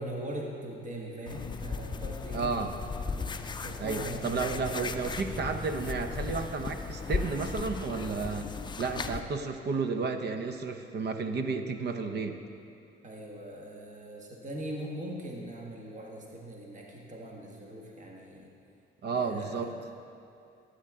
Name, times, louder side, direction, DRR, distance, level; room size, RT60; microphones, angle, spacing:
voice 1, 0.0-2.5 3.4-4.7 13.0-18.5 19.2-19.8, right 1 dB, 40° right, -2 dB, 1.6 m, -41 dB
sound 1, 1.3-9.2, left 5 dB, 25° left, 0.5 m, -36 dB
voice 2, 2.3-2.7 3.8-8.5 8.8-12.4 19.0-19.7, right 4 dB, 55° right, 7 dB, 0.8 m, -32 dB
12.5 x 8.6 x 3.7 m, 2.5 s
cardioid pair, 90°, 20 cm